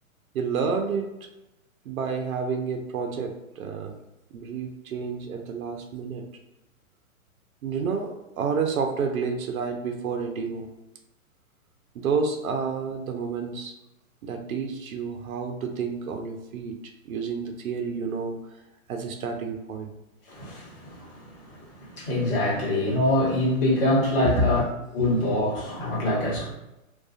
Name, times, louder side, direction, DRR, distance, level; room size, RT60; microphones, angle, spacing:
voice 1, 0.3-1.1 1.9-3.9 4.3-6.2 7.6-10.7 11.9-13.7 14.2-16.8 17.1-18.6 18.9-19.9 24.2-24.5, right 5 dB, 80° right, 4 dB, 0.6 m, -29 dB
voice 2, 20.3-21.2 21.5-24.6 24.9-26.5, left 1 dB, 40° left, -4 dB, 1.0 m, -25 dB
2.4 x 2.3 x 2.3 m, 0.95 s
hypercardioid pair, 130°, 42 cm